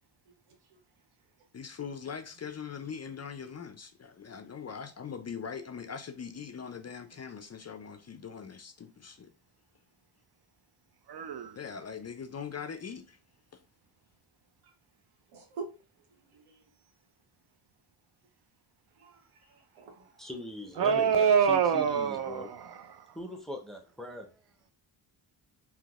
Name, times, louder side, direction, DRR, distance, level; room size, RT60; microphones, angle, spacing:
voice 1, 1.5-9.3 11.6-13.2 13.5-13.6, left 6 dB, 35° left, 0.4 m, -41 dB
voice 2, 11.1-11.6 20.8-23.1, right 7 dB, 55° right, 0.5 m, -26 dB
voice 3, 15.3-15.7 16.3-16.6 19.0-20.3, right 4 dB, 85° right, 0.9 m, -46 dB
voice 4, 20.2-22.5 23.1-24.4, equal, ahead, 0.7 m, -41 dB
3.8 x 2.8 x 2.4 m
cardioid pair, 50°, 49 cm